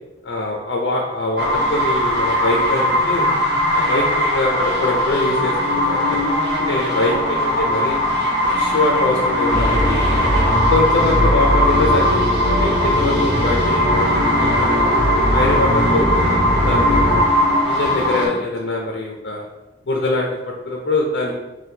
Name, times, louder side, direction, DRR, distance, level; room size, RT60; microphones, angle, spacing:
voice 1, 0.2-3.3 3.7-6.3 6.6-8.0 8.4-10.1 10.7-14.9 15.3-16.2 16.7-17.2 17.6-19.5 19.9-21.4, left 2 dB, 65° left, -1 dB, 0.4 m, -23 dB
sound 1, 1.4-18.3, left 1 dB, 65° right, 1.0 m, -19 dB
sound 2, 9.5-17.2, equal, 25° right, 1.2 m, -21 dB
4.2 x 2.2 x 2.7 m, 1.0 s
head